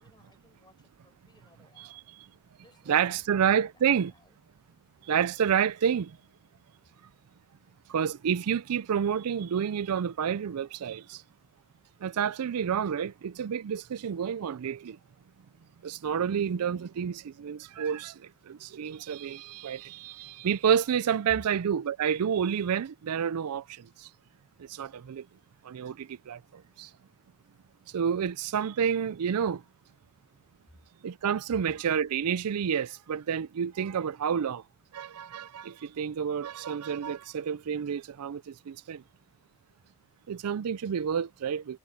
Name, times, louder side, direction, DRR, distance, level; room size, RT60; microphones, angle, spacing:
voice 1, 0.0-2.0 2.6-4.4 18.4-18.8 38.9-39.0, left 2 dB, 20° left, 5.2 m, -63 dB
voice 2, 2.9-4.1 5.1-6.1 7.9-11.2 12.0-15.0 15.8-18.1 18.5-23.6 24.8-25.2 25.7-26.9 27.9-29.6 31.0-34.6 34.9-39.0 40.3-41.8, right 8 dB, 85° right, 0.4 m, -29 dB
head